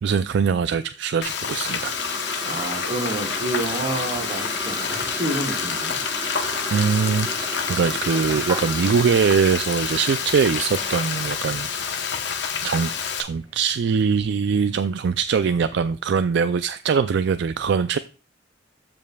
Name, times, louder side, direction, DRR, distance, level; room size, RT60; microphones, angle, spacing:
voice 1, 0.0-1.9 6.7-12.1 12.6-12.9 13.2-18.0, right 6 dB, 65° right, 0.3 m, -22 dB
Frying (food), 1.2-13.2, left 6 dB, 65° left, 0.9 m, -28 dB
sound 1, 1.4-12.0, right 2 dB, 20° right, 0.9 m, -35 dB
voice 2, 2.4-6.0, right 2 dB, 45° right, 1.8 m, -29 dB
sound 2, 10.7-15.9, left 2 dB, 35° left, 2.5 m, -45 dB
14.0 x 5.3 x 2.3 m
head